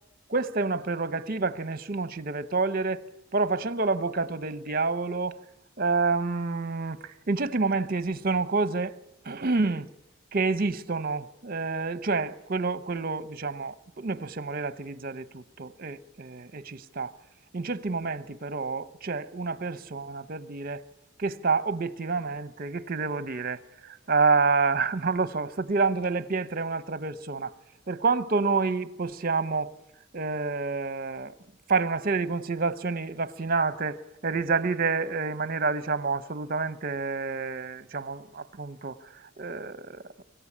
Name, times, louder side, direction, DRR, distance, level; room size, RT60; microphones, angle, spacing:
voice 1, 0.3-3.0 3.3-5.3 5.8-7.0 7.3-8.9 9.2-9.9 10.3-17.1 17.5-20.8 21.2-27.5 27.9-29.7 30.1-31.3 31.7-39.0 39.4-40.0, right 4 dB, 50° right, 0.9 m, -28 dB
25.0 x 15.0 x 9.8 m
head